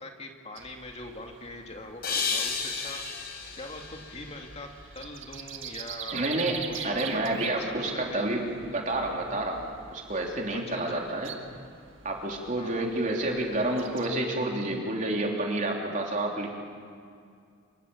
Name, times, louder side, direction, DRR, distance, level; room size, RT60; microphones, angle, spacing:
voice 1, 0.0-3.0 3.6-4.7 4.9-7.2 7.6-8.4 10.5-11.0 12.6-12.9, left 2 dB, 30° left, 2 dB, 2.4 m, -42 dB
sound 1, 0.6-14.1, right 8 dB, 65° right, 1.8 m, -44 dB
sound 2, 2.0-5.2, left 5 dB, 50° left, 4.0 m, -33 dB
voice 2, 6.1-8.4 8.7-11.4 12.0-16.5, right 1 dB, 40° right, 0 dB, 3.5 m, -29 dB
27.0 x 24.0 x 7.2 m, 2.2 s
head